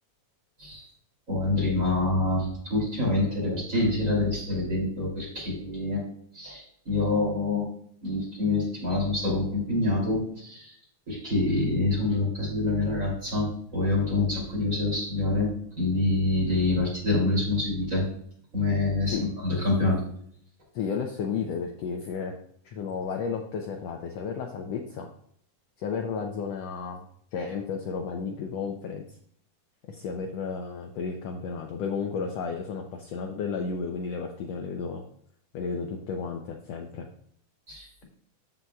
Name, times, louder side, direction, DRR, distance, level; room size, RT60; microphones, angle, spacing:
voice 1, 1.3-6.0 6.3-7.7 8.0-10.7 11.1-18.0 18.5-20.0 37.7-38.0, left 2 dB, 25° right, -4 dB, 2.9 m, -26 dB
voice 2, 20.7-22.3 22.6-25.1 25.8-27.1 27.3-29.0 29.8-35.0 35.5-37.1, left 5 dB, 85° left, 3 dB, 1.4 m, -33 dB
13.5 x 5.5 x 2.3 m, 0.65 s
omnidirectional pair, 3.8 m